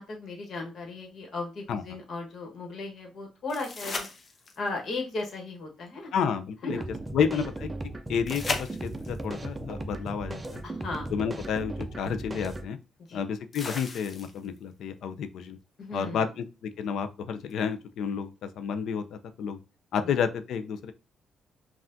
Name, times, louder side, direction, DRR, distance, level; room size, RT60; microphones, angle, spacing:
voice 1, 0.0-4.1 4.6-6.1 6.6-6.8 7.3-7.5 10.6-11.1 13.1-13.3 15.8-16.3 20.0-20.1, left 3 dB, 60° left, 1.3 m, -36 dB
sound 1, 3.5-4.8 8.3-9.2 11.1-11.2 13.5-14.6 17.5-17.6, left 3 dB, 40° left, 0.8 m, -36 dB
voice 2, 6.1-6.8 7.1-7.7 8.1-10.6 11.1-12.8 13.1-15.6 15.9-19.6 19.9-20.9, left 7 dB, 75° left, 0.4 m, -30 dB
sound 2, 6.7-12.7, right 2 dB, 20° right, 0.5 m, -37 dB
5.5 x 2.4 x 2.6 m
cardioid pair, 90°, 0 cm